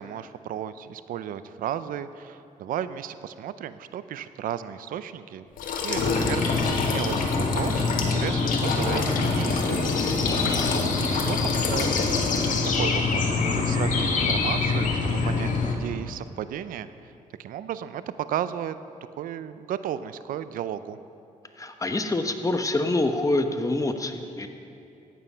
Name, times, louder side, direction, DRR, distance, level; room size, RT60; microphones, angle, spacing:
voice 1, 0.0-5.4 5.8-10.1 10.7-12.1 12.8-16.9 17.4-18.8 19.2-21.0, right 10 dB, 85° right, 13 dB, 0.5 m, -34 dB
sound 1, 5.6-12.8, left 4 dB, 90° left, 1.4 m, -30 dB
sound 2, 6.0-15.7, left 4 dB, 65° left, 1.6 m, -25 dB
voice 2, 10.2-10.8 21.6-24.5, left 2 dB, 25° left, 7 dB, 1.0 m, -26 dB
14.5 x 9.7 x 5.6 m, 2.6 s
cardioid pair, 80°, 14 cm